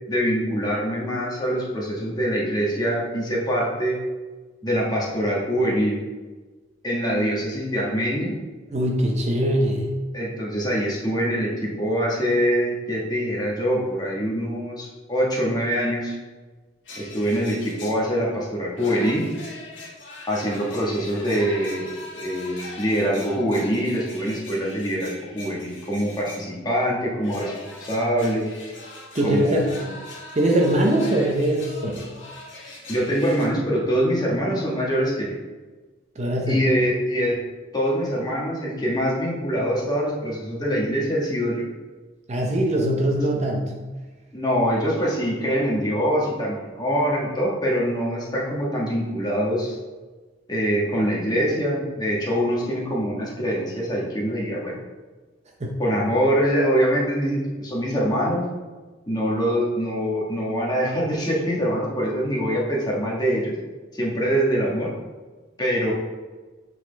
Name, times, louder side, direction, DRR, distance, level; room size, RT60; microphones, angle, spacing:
voice 1, 0.1-4.0 4.6-6.0 6.8-8.3 10.1-16.1 17.0-19.2 20.3-21.9 22.2-27.5 27.8-28.5 29.2-29.9 32.6-35.3 36.5-37.4 37.7-41.7 44.3-49.8 50.5-54.7 55.8-58.4 59.1-63.5 63.9-64.9 65.6-65.9, equal, 20° left, -4 dB, 1.4 m, -24 dB
voice 2, 8.7-9.9 29.1-29.6 30.4-32.1 36.2-36.6 42.3-43.7 55.6-55.8, right 1 dB, 35° right, 0 dB, 0.7 m, -22 dB
sound 1, 16.8-18.3 18.7-26.4 27.2-33.5, left 2 dB, 75° left, 1.6 m, -41 dB
7.4 x 4.1 x 3.3 m, 1.3 s
head